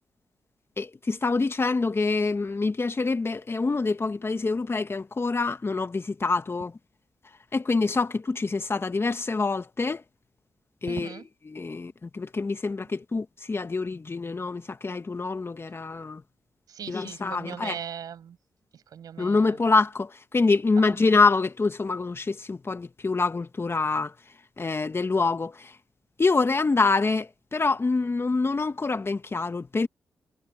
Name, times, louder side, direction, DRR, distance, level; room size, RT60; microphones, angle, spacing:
voice 1, 0.8-6.8 7.5-10.0 10.8-16.2 16.9-17.8 19.2-24.1 24.6-25.7 26.2-29.9, left 3 dB, 40° left, 1.7 m, -26 dB
voice 2, 10.9-11.3 16.7-18.4 18.7-19.6 20.9-21.0, right 8 dB, 75° right, 7.4 m, -39 dB
supercardioid pair, 40°, 6 cm